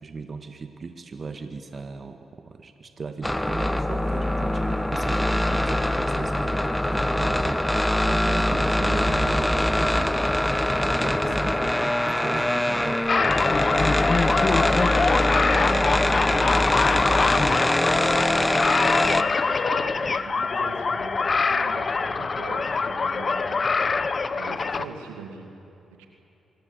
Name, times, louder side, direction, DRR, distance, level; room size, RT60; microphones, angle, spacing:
voice 1, 0.0-10.1 10.7-13.1, right 4 dB, 50° right, 7 dB, 1.6 m, -37 dB
sound 1, 3.2-19.2, left 1 dB, 10° left, 1.1 m, -23 dB
sound 2, 13.1-24.9, left 4 dB, 45° left, 1.2 m, -24 dB
voice 2, 14.4-23.9 24.4-25.5 26.0-26.1, right 5 dB, 90° right, 4 dB, 2.6 m, -41 dB
25.0 x 24.5 x 8.0 m, 2.9 s
hypercardioid pair, 40°, 0 cm